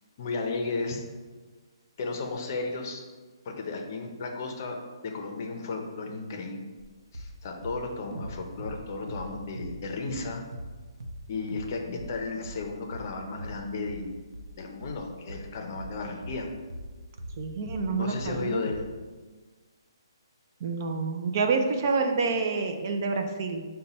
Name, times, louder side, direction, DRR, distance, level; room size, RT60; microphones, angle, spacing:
voice 1, 0.2-1.0 2.0-3.0 3.4-4.8 5.0-6.6 7.1-10.4 11.3-14.2 14.6-16.5 18.0-18.9, left 3 dB, 40° left, 3 dB, 0.6 m, -34 dB
sound 1, 6.8-6.9 7.1-7.3 7.6-9.8 10.0-10.3 10.5-10.7 11.0-11.2 11.5-11.7 12.0-17.4 17.7-18.4 18.6-18.8, right 1 dB, 85° right, 0.6 m, -40 dB
voice 2, 17.4-18.6 20.6-23.6, right 4 dB, 40° right, 5 dB, 0.4 m, -28 dB
5.3 x 2.2 x 4.1 m, 1.4 s
hypercardioid pair, 165°, 3 cm